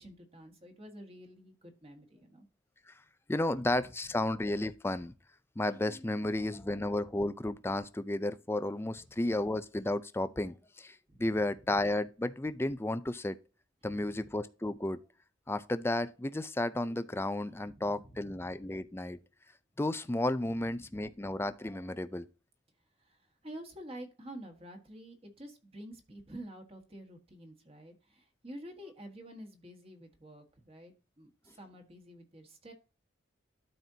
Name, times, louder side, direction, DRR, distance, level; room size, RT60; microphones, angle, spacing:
voice 1, 0.0-2.5 3.8-3.9 8.9-9.0 11.1-11.5 13.8-14.3 17.5-18.4 20.7-21.0 23.0-32.7, right 1 dB, 30° right, 1.6 m, -49 dB
voice 2, 3.3-5.1 5.6-13.4 13.8-15.0 15.5-19.2 19.8-22.3, left 1 dB, 10° left, 0.4 m, -33 dB
12.5 x 4.3 x 2.8 m
head